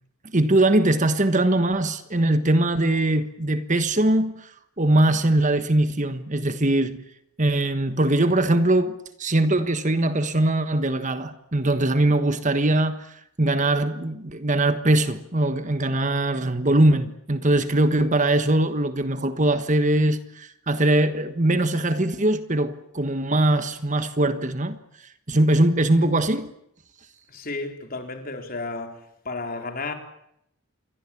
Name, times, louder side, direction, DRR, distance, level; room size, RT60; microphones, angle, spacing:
voice 1, 0.3-4.5 4.8-7.0 7.4-24.8 25.3-26.5, right 1 dB, 35° right, 1.4 m, -21 dB
voice 2, 27.3-29.9, left 3 dB, 40° left, 4.2 m, -33 dB
28.0 x 22.5 x 8.7 m
head